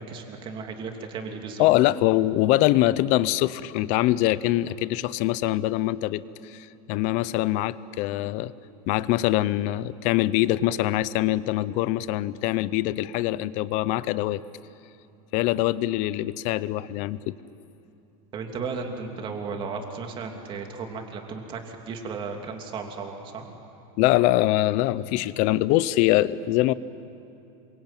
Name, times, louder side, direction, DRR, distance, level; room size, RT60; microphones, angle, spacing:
voice 1, 0.0-1.7 18.3-23.6, right 5 dB, 25° right, 3 dB, 2.8 m, -35 dB
voice 2, 1.6-8.5 8.9-14.4 15.3-17.3 24.0-26.7, left 16 dB, 40° left, 18 dB, 0.7 m, -23 dB
27.5 x 24.0 x 9.0 m, 2.7 s
supercardioid pair, 160°, 19 cm